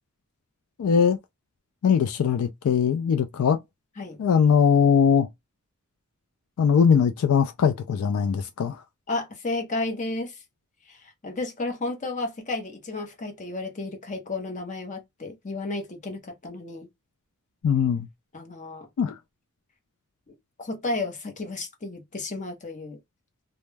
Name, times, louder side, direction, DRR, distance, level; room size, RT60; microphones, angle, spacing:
voice 1, 0.8-1.2 1.8-3.6 4.2-5.3 6.6-8.8 17.6-18.1 19.0-19.1, left 7 dB, 70° left, 0.3 m, -21 dB
voice 2, 9.1-10.4 10.9-16.9 18.3-18.9 20.3-23.0, left 2 dB, 35° left, 0.7 m, -32 dB
2.2 x 2.0 x 3.1 m
head